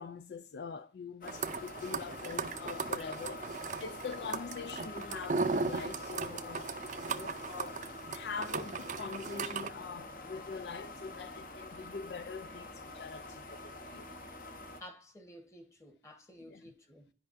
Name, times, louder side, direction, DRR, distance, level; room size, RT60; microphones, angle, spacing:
voice 1, 0.0-3.5 3.8-6.8 7.1-7.8 8.1-14.1 16.4-16.7, left 5 dB, 70° left, 0.4 m, -43 dB
sound 1, 1.2-14.8, left 2 dB, 50° left, 1.0 m, -46 dB
sound 2, 1.3-9.7, right 4 dB, 45° right, 0.5 m, -37 dB
voice 2, 14.8-17.1, left 1 dB, 15° left, 1.2 m, -52 dB
10.5 x 5.4 x 2.5 m
head